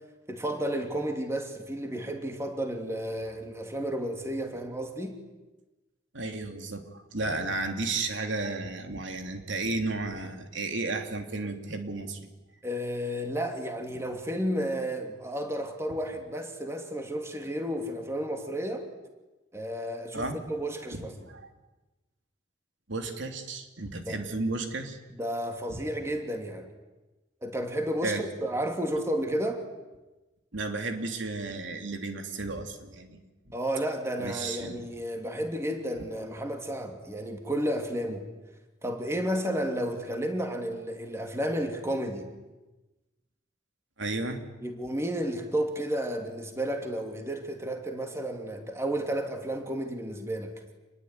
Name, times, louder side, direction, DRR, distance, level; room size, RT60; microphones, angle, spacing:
voice 1, 0.3-5.2 12.6-18.9 19.5-21.3 24.1-24.2 25.2-26.7 27.4-29.6 33.5-38.3 38.8-42.3 44.6-50.5, equal, 15° right, 4 dB, 2.7 m, -32 dB
voice 2, 6.1-12.2 20.1-20.4 20.9-21.5 22.9-25.0 25.7-25.8 28.0-28.2 30.5-33.2 34.2-34.8 44.0-44.4, right 3 dB, 80° right, 5 dB, 3.1 m, -33 dB
27.0 x 21.5 x 9.7 m, 1.1 s
head